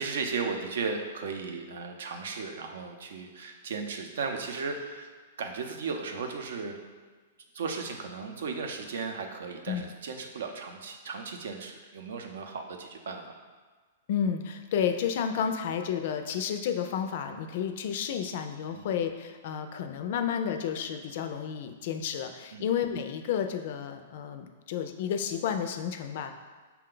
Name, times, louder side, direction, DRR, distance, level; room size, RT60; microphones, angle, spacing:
voice 1, 0.0-6.8 7.5-13.2 18.7-18.9 22.5-22.7, right 4 dB, 75° right, 4 dB, 0.6 m, -35 dB
voice 2, 14.1-26.3, left 8 dB, 55° left, 7 dB, 0.4 m, -31 dB
5.7 x 2.2 x 3.8 m, 1.4 s
hypercardioid pair, 155°, 0 cm